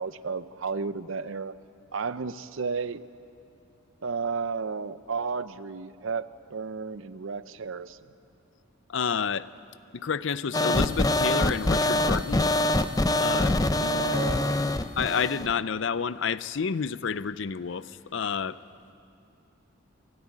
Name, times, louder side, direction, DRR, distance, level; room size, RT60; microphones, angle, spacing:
voice 1, 0.0-1.5 1.9-3.0 4.0-8.0 13.7-14.6, right 5 dB, 70° right, 14 dB, 0.6 m, -33 dB
voice 2, 8.9-9.5 9.9-12.5 13.2-13.6 15.0-18.6, left 6 dB, 65° left, 16 dB, 0.5 m, -29 dB
sound 1, 10.5-15.5, left 1 dB, 20° left, 0.6 m, -24 dB
27.5 x 12.5 x 9.6 m, 2.6 s
head